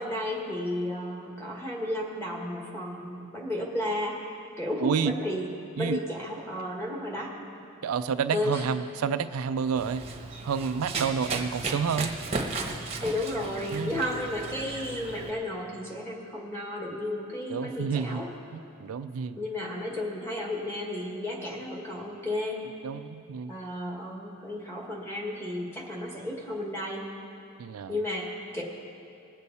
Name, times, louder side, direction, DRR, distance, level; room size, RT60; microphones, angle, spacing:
voice 1, 0.0-4.2 4.6-5.5 5.8-7.3 8.3-8.7 13.0-18.3 19.3-22.7 23.5-27.0 27.9-28.6, left 1 dB, 10° left, -2 dB, 1.7 m, -33 dB
voice 2, 4.8-5.1 5.8-6.0 7.8-10.0 10.4-12.2 13.7-13.9 17.5-18.2 18.5-19.4 22.8-23.5 27.6-28.0, right 6 dB, 70° right, 11 dB, 0.4 m, -29 dB
Run, 9.8-15.3, right 3 dB, 30° right, 1.0 m, -35 dB
20.5 x 8.3 x 4.2 m, 2.6 s
head